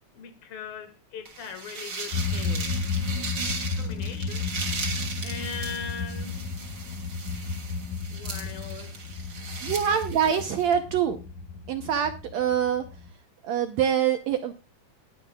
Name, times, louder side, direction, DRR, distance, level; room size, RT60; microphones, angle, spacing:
voice 1, 0.2-2.7 3.7-4.5 5.2-6.4 8.1-9.0, left 7 dB, 85° left, 3.5 m, -39 dB
sound 1, 1.3-10.7, right 4 dB, 35° right, 2.9 m, -37 dB
sound 2, 2.1-13.1, left 4 dB, 65° left, 2.8 m, -33 dB
voice 2, 9.6-11.2 11.7-12.8 13.4-14.5, right 8 dB, 70° right, 1.7 m, -25 dB
20.0 x 9.9 x 2.3 m
omnidirectional pair, 4.0 m